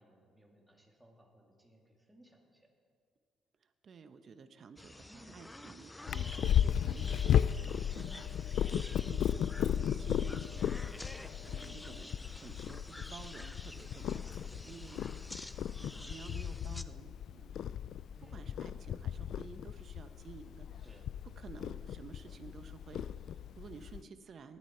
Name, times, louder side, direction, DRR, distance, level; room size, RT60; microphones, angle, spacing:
voice 1, 0.0-2.7 5.0-5.4 7.9-8.4 11.1-11.5 15.8-16.2 18.1-18.5 20.8-21.0, right 1 dB, 10° right, 0 dB, 2.7 m, -60 dB
voice 2, 3.8-7.7 8.0-8.1 8.7-15.0 15.5-17.7 18.2-20.9 21.2-24.6, right 5 dB, 50° right, 9 dB, 1.0 m, -52 dB
sound 1, 4.8-16.8, left 1 dB, 10° left, 0.5 m, -50 dB
Purr, 6.1-24.0, left 9 dB, 65° left, 0.4 m, -35 dB
19.0 x 13.0 x 4.5 m, 2.1 s
cardioid pair, 100°, 0 cm